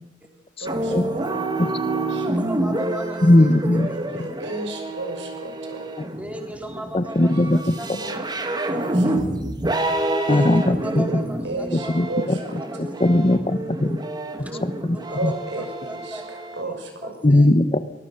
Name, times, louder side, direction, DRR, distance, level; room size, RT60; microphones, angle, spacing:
voice 1, 0.6-2.3 3.9-5.9 7.6-8.5 8.7-9.1 11.1-12.9 15.1-17.2, right 2 dB, 85° right, 4 dB, 6.0 m, -34 dB
sound 1, 0.7-16.6, right 1 dB, 25° right, 2.1 m, -28 dB
voice 2, 2.1-3.5 3.9-4.0 6.0-8.1 8.7-8.8 9.0-9.2 10.1-12.1 12.7-13.2 14.4-15.2 15.6-16.5 17.0-17.5, right 1 dB, 10° right, 2 dB, 3.8 m, -38 dB
voice 3, 3.2-3.9 6.9-7.6 10.3-11.1 12.0-12.1 13.0-14.0 14.6-15.0 17.2-17.8, left 1 dB, 35° left, 13 dB, 1.0 m, -18 dB
23.5 x 21.0 x 6.7 m, 0.89 s
head